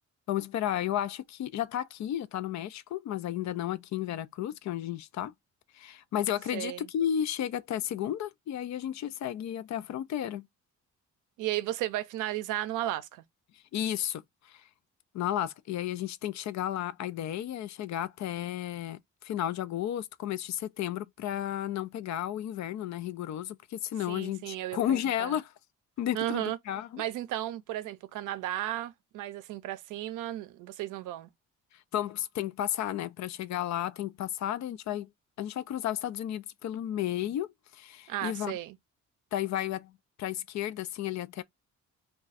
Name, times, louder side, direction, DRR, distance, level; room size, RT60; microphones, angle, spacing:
voice 1, 0.3-5.3 5.7-10.5 13.5-14.6 15.1-25.5 26.0-27.0 31.9-35.1 35.4-38.5 39.3-39.9 40.2-41.4, left 11 dB, 65° left, 0.5 m, -33 dB
voice 2, 6.5-6.9 11.4-13.2 24.1-25.3 26.1-26.6 27.0-31.3 38.1-38.8, right 14 dB, 90° right, 0.5 m, -34 dB
2.4 x 2.3 x 4.0 m
cardioid pair, 90°, 30 cm